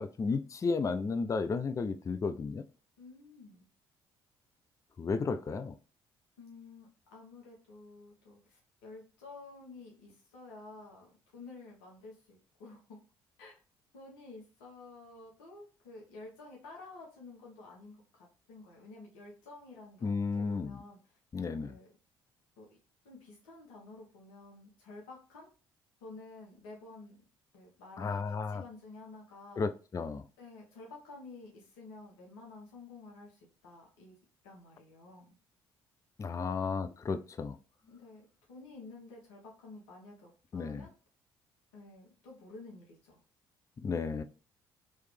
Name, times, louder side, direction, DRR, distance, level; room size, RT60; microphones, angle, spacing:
voice 1, 0.0-2.6 5.0-5.7 20.0-20.8 21.3-21.8 28.0-28.6 29.6-30.2 36.2-37.6 40.5-40.9 43.8-44.2, left 4 dB, 25° left, 0.4 m, -33 dB
voice 2, 3.0-3.7 6.4-13.0 13.4-13.6 13.9-20.1 20.3-21.1 21.6-21.9 22.6-22.8 23.0-25.5 26.0-27.2 27.5-29.6 30.4-34.2 34.4-35.4 36.3-36.7 37.9-38.2 38.5-40.9 41.7-43.2, left 3 dB, 75° left, 1.3 m, -51 dB
3.1 x 3.1 x 3.3 m
hypercardioid pair, 50°, 12 cm